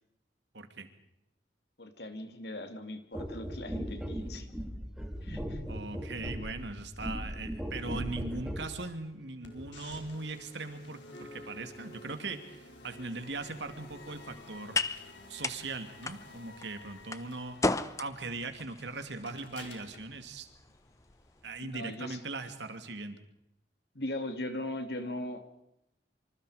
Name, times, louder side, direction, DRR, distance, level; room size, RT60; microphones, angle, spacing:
voice 1, 0.5-0.9 5.7-14.8 15.3-20.5 21.4-23.2, right 3 dB, 80° right, 8 dB, 2.5 m, -40 dB
voice 2, 1.8-4.5 5.2-5.6 21.6-22.2 23.9-25.4, left 1 dB, 65° left, 7 dB, 2.7 m, -39 dB
sound 1, 3.1-8.7 9.6-9.7, equal, 5° right, 3.1 m, -38 dB
sound 2, 9.4-21.4, left 2 dB, 85° left, 4.5 m, -52 dB
sound 3, 13.2-21.6, left 3 dB, 15° left, 0.8 m, -38 dB
26.5 x 25.5 x 5.0 m, 0.84 s
head